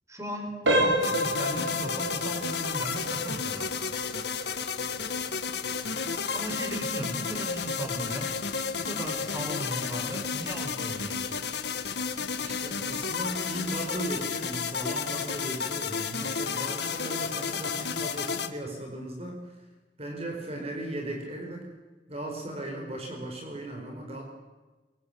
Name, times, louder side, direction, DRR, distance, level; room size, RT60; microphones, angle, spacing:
voice 1, 0.1-3.7 6.3-8.3 8.7-11.4, equal, 15° right, 3 dB, 5.3 m, -36 dB
sound 1, 0.6-11.3 11.7-11.9 12.5-12.6 13.1-13.2, right 1 dB, 90° right, 4.4 m, -33 dB
sound 2, 1.0-18.5, left 6 dB, 65° left, 2.1 m, -32 dB
voice 2, 12.3-19.4 20.0-21.7 22.1-24.2, right 1 dB, 35° right, 1 dB, 4.8 m, -37 dB
24.5 x 23.0 x 8.8 m, 1.2 s
head